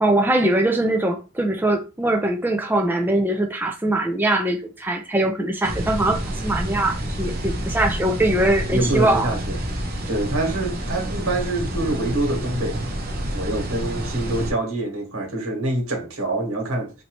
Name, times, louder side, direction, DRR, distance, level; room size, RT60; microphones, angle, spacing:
voice 1, 0.0-9.3, right 1 dB, 10° right, 0.4 m, -22 dB
sound 1, 5.6-14.5, right 1 dB, 45° right, 0.8 m, -28 dB
voice 2, 8.7-9.6 10.1-12.9 13.3-16.9, right 2 dB, 90° right, 1.5 m, -25 dB
4.4 x 2.7 x 3.1 m
head